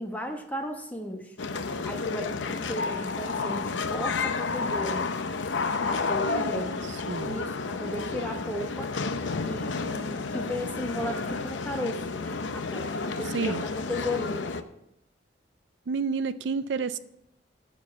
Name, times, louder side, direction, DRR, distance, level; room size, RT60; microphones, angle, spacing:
voice 1, 0.0-1.3 1.8-5.1 5.8-6.8 7.2-8.9 9.4-14.5, equal, 10° left, 4 dB, 1.1 m, -35 dB
sound 1, 1.4-14.6, left 4 dB, 80° left, 0.7 m, -31 dB
voice 2, 6.3-6.6 6.9-7.4 13.3-13.6 15.9-17.0, right 5 dB, 70° right, 14 dB, 0.4 m, -30 dB
14.0 x 4.7 x 7.2 m, 0.82 s
head